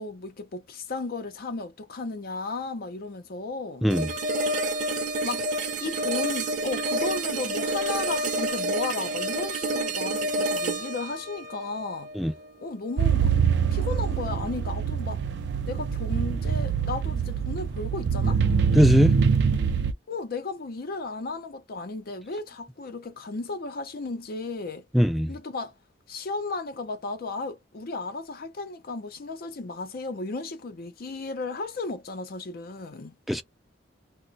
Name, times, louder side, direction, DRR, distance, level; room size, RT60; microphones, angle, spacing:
voice 1, 0.0-3.9 5.2-12.1 12.6-13.3 13.7-15.2 15.7-18.4 20.1-24.8 25.3-25.7 26.1-33.2, left 3 dB, 55° left, 0.5 m, -34 dB
sound 1, 3.9-12.9, right 1 dB, 45° right, 0.8 m, -29 dB
sound 2, 13.0-19.9, right 6 dB, 65° right, 0.4 m, -24 dB
voice 2, 18.7-19.1 24.9-25.3 33.3-33.4, equal, ahead, 0.3 m, -20 dB
2.4 x 2.1 x 3.9 m
head